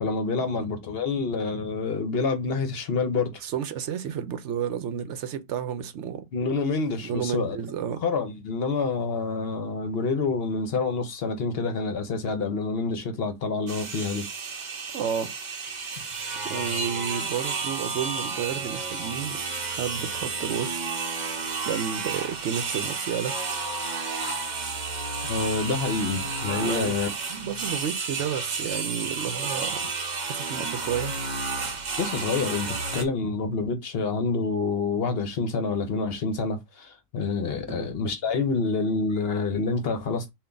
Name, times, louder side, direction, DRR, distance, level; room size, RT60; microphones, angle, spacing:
voice 1, 0.0-3.3 6.3-7.6 8.0-14.3 25.3-27.1 32.0-40.3, left 4 dB, 60° left, 0.9 m, -27 dB
voice 2, 3.4-6.3 7.0-8.0 14.5-14.6 14.9-15.3 16.4-19.4 19.7-20.8 21.6-23.3 26.6-27.0 27.3-29.8 30.3-31.1 37.7-37.9, right 8 dB, 70° right, 0.9 m, -31 dB
sound 1, 13.7-33.0, right 4 dB, 40° right, 0.8 m, -31 dB
3.4 x 2.5 x 3.8 m
omnidirectional pair, 1.2 m